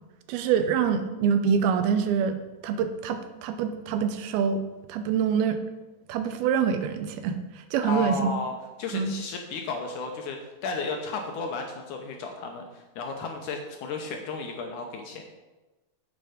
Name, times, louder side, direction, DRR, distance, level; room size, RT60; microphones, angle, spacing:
voice 1, 0.3-2.3 2.6-4.6 4.9-5.6 6.1-7.4 7.7-8.3 8.9-9.1, right 7 dB, 80° right, 9 dB, 2.5 m, -25 dB
voice 2, 7.8-8.5 8.8-15.2, left 3 dB, 75° left, 3 dB, 1.9 m, -33 dB
9.6 x 7.8 x 5.0 m, 1.1 s
omnidirectional pair, 4.5 m